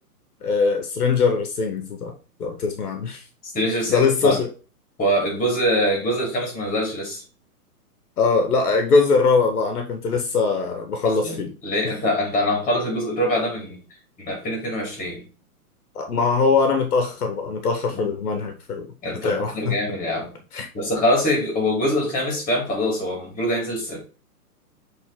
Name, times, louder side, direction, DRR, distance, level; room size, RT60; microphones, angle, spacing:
voice 1, 0.4-2.1 2.4-3.2 3.9-4.5 8.2-11.5 15.9-18.9 19.2-19.8 20.5-20.7, left 4 dB, 70° left, 4 dB, 1.5 m, -21 dB
voice 2, 3.4-4.4 5.0-7.2 11.0-13.8 14.2-15.3 17.9-18.1 19.0-20.4 20.7-24.0, equal, 20° left, 0 dB, 3.9 m, -24 dB
7.2 x 3.9 x 3.7 m, 0.35 s
hypercardioid pair, 130°, 46 cm